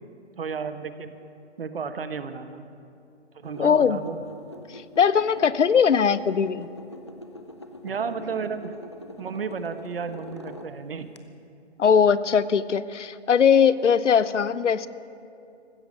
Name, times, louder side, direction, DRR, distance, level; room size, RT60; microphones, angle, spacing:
voice 1, 0.4-1.1 1.6-2.7 3.3-4.2 7.8-8.7 9.2-11.2, right 5 dB, 55° right, 10 dB, 1.0 m, -32 dB
sound 1, 3.4-11.2, left 1 dB, 25° left, 0.4 m, -44 dB
voice 2, 3.6-4.0 4.7-6.7 11.8-14.9, left 7 dB, 85° left, 17 dB, 0.7 m, -20 dB
15.5 x 14.0 x 5.3 m, 2.6 s
hypercardioid pair, 155°, 35 cm